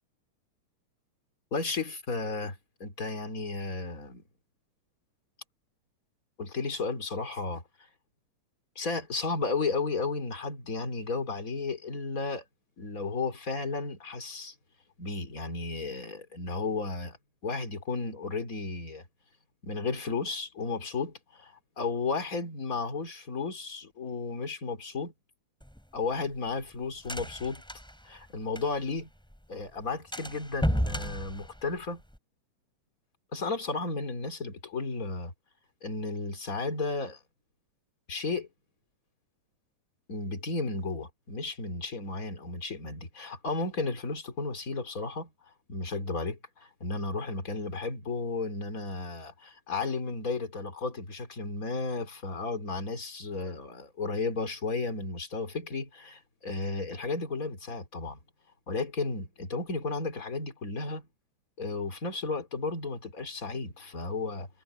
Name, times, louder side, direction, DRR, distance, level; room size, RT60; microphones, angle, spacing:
voice 1, 1.5-4.2 6.4-7.6 8.8-12.4 12.8-14.5 15.0-17.2 17.4-19.0 19.6-25.1 25.9-27.6 28.0-29.1 29.5-32.0 33.3-35.3 35.8-37.2 38.1-38.5 40.1-45.3 45.7-58.2 58.7-61.1 61.6-64.5, left 3 dB, 30° left, 3.5 m, -33 dB
sound 1, 25.6-29.0 29.3-29.4 29.7-29.8 30.1-32.2, equal, ahead, 4.0 m, -33 dB
omnidirectional pair, 3.4 m